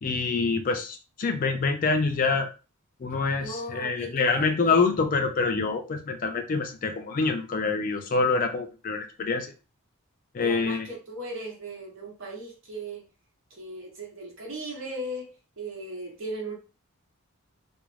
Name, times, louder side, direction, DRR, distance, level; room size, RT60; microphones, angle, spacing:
voice 1, 0.0-2.5 3.0-9.5 10.3-10.9, left 4 dB, 40° left, 0.4 m, -26 dB
voice 2, 3.3-4.8 8.2-8.5 10.4-13.1 13.5-15.3 15.6-16.5, right 1 dB, 60° right, 1.0 m, -37 dB
2.4 x 2.0 x 3.1 m
head